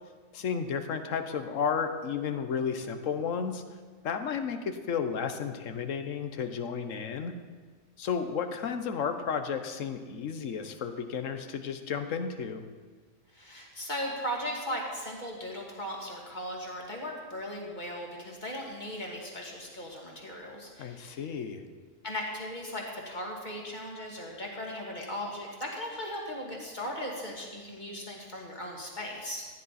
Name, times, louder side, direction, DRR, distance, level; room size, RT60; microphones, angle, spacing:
voice 1, 0.3-3.6 4.0-7.3 8.0-12.6 20.8-21.6, left 6 dB, 70° left, 8 dB, 1.2 m, -32 dB
voice 2, 13.3-21.2 22.0-29.5, equal, 35° left, -2 dB, 2.4 m, -37 dB
15.0 x 10.5 x 4.2 m, 1.5 s
omnidirectional pair, 1.4 m